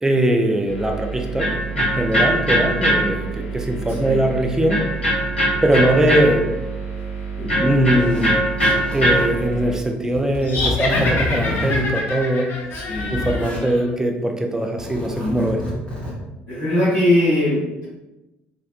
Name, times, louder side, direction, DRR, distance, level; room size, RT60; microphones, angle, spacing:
voice 1, 0.0-4.8 5.6-6.5 7.6-8.4 8.9-12.5 13.1-15.8, right 1 dB, 10° right, 3 dB, 0.3 m, -21 dB
Electric guitar, 0.7-9.7, right 1 dB, 85° left, 0.7 m, -22 dB
voice 2, 3.9-4.3 7.4-7.6 12.7-13.2 15.2-15.5 16.5-17.9, left 1 dB, 85° right, -10 dB, 0.9 m, -21 dB
Zipper (clothing), 7.0-7.1 7.9-8.3 8.6-9.4 10.1-11.9 12.6-13.6 14.6-16.1, left 2 dB, 20° left, 0.9 m, -29 dB
sound 1, 10.4-13.9, left 2 dB, 40° left, 0.5 m, -26 dB
2.3 x 2.2 x 2.5 m, 1.0 s
figure-of-eight pair, 55°, 6 cm